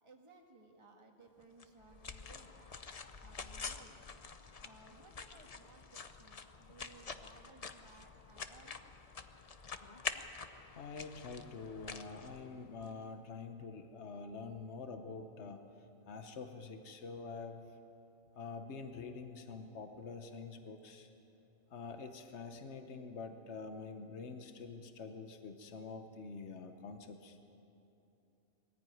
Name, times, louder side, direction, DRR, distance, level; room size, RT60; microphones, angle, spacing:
voice 1, 0.0-4.0 4.6-8.8, right 2 dB, 25° right, 1 dB, 1.8 m, -60 dB
sound 1, 1.6-12.9, left 5 dB, 35° left, 0.7 m, -47 dB
voice 2, 10.7-15.6 16.1-17.8 18.3-21.1 21.7-27.4, left 4 dB, 75° left, 6 dB, 1.3 m, -46 dB
21.0 x 15.0 x 9.2 m, 2.8 s
omnidirectional pair, 1.2 m